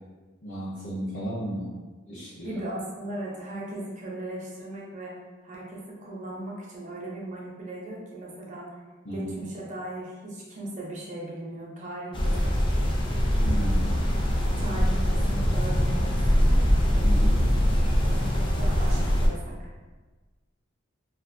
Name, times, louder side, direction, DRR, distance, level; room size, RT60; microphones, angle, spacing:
voice 1, 0.4-1.7 2.1-2.6 9.0-9.3 13.3-13.9 17.0-17.4, equal, 65° left, -9 dB, 0.7 m, -34 dB
voice 2, 2.4-5.2 5.4-8.7 9.1-12.5 14.6-16.6 18.1-19.7, right 1 dB, 35° right, -4 dB, 0.6 m, -38 dB
sound 1, 12.1-19.3, equal, 25° left, 0.4 m, -23 dB
2.5 x 2.5 x 2.5 m, 1.3 s
head